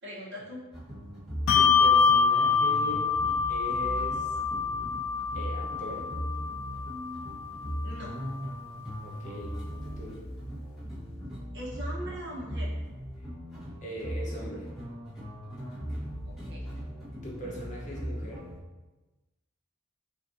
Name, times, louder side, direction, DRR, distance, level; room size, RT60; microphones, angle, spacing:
voice 1, 0.0-0.6 7.8-8.1 11.5-12.7 16.2-16.6, equal, 55° right, -5 dB, 1.1 m, -40 dB
sound 1, 0.7-18.6, equal, ahead, 1.3 m, -38 dB
Bell, 1.5-8.3, left 5 dB, 70° left, 0.3 m, -26 dB
voice 2, 1.5-3.1 3.5-4.3 5.3-6.1 9.0-9.5 9.8-10.3 13.8-14.7 17.2-18.4, right 1 dB, 35° left, -4 dB, 0.9 m, -40 dB
6.0 x 2.6 x 2.7 m, 1.1 s
head